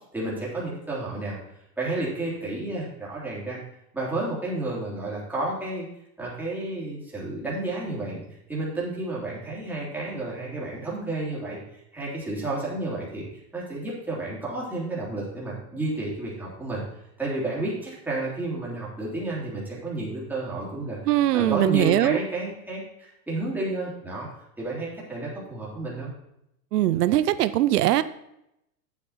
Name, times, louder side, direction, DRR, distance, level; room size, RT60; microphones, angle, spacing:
voice 1, 0.1-1.4 1.8-3.6 3.9-5.9 6.2-8.2 8.5-11.6 11.9-13.3 13.5-16.8 17.2-21.0 21.3-24.3 24.6-26.1, right 2 dB, 5° right, -7 dB, 3.3 m, -31 dB
voice 2, 21.1-22.2 26.7-28.0, right 14 dB, 90° right, 14 dB, 0.7 m, -21 dB
8.5 x 8.4 x 4.3 m, 0.81 s
supercardioid pair, 145°, 46 cm